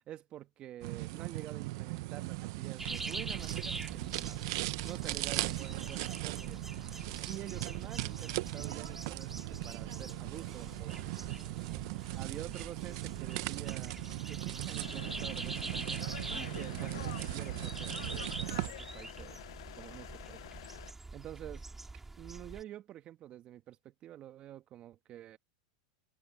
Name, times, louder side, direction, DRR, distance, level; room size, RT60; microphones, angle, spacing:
voice 1, 0.0-4.4 4.8-6.6 7.3-11.0 12.1-14.0 14.3-19.4 19.7-20.6 20.9-21.7 22.2-25.4, right 12 dB, 40° right, 2.0 m, -48 dB
sound 1, 0.8-18.7, right 20 dB, 65° right, 0.9 m, -38 dB
sound 2, 2.8-22.6, right 3 dB, 10° right, 2.8 m, -45 dB
sound 3, 14.8-20.9, left 14 dB, 80° left, 0.7 m, -48 dB
open air
supercardioid pair, 115°, 3 cm